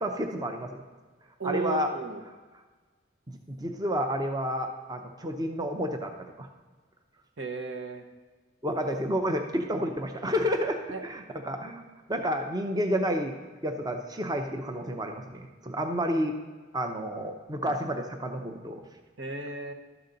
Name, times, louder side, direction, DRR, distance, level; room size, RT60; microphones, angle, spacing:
voice 1, 0.0-0.8 1.4-1.9 3.3-6.5 8.6-11.8 12.1-13.3 13.6-16.3 16.7-18.8, equal, 20° right, 4 dB, 0.6 m, -30 dB
voice 2, 1.4-2.2 7.4-8.0 10.9-11.0 17.6-17.8 19.2-19.7, right 4 dB, 80° right, 5 dB, 1.0 m, -34 dB
12.0 x 6.9 x 3.9 m, 1.4 s
head